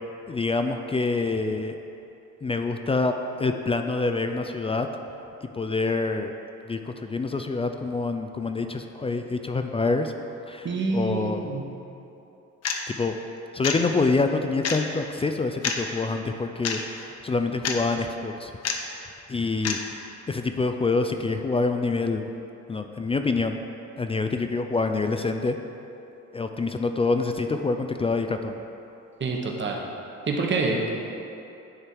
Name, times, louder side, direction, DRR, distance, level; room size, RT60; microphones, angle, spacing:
voice 1, 0.3-1.8 2.4-4.9 5.5-6.3 6.7-10.1 10.5-11.5 12.9-13.1 13.5-18.5 19.3-19.8 20.3-22.2 22.7-23.6 24.0-25.6 26.3-28.6, left 3 dB, 20° left, 6 dB, 0.3 m, -26 dB
voice 2, 10.6-11.6 29.2-29.8 30.3-30.9, right 3 dB, 40° right, 0 dB, 1.1 m, -26 dB
sound 1, 12.6-12.8 13.6-13.8 14.6-14.8 15.6-15.8 16.6-16.8 17.6-17.8 18.6-18.8 19.6-19.8, left 6 dB, 55° left, 0.7 m, -27 dB
9.8 x 3.6 x 4.5 m, 2.9 s
cardioid pair, 90°, 30 cm